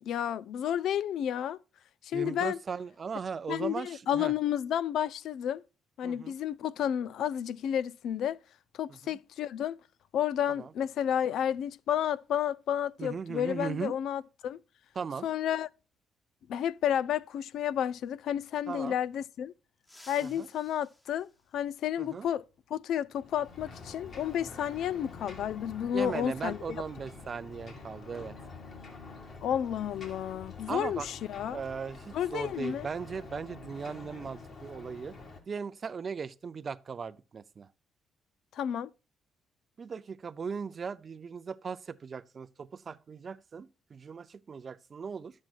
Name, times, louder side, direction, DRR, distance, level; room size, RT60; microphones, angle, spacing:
voice 1, 0.0-1.6 2.0-2.6 3.5-5.6 6.0-8.4 8.7-9.8 10.1-14.6 15.2-15.7 16.5-19.5 20.1-22.4 22.7-26.8 29.4-31.6 32.1-32.9 38.5-38.9, left 10 dB, 75° left, 0.3 m, -31 dB
voice 2, 2.1-4.3 6.0-6.3 9.0-9.1 10.6-10.7 13.0-13.9 15.0-15.3 18.7-19.0 20.2-20.5 22.0-22.3 25.9-28.4 30.7-31.1 31.5-35.2 35.5-37.7 39.8-45.3, right 6 dB, 45° right, 0.5 m, -38 dB
sound 1, 19.8-22.2 23.8-23.9 25.2-25.3 26.9-27.0 27.4-27.6 28.1-30.3 30.5-30.8 31.2-31.7, left 1 dB, 15° left, 1.1 m, -59 dB
Ocean, 23.1-35.4, left 3 dB, 50° left, 2.2 m, -47 dB
10.5 x 7.4 x 2.4 m
cardioid pair, 90°, 0 cm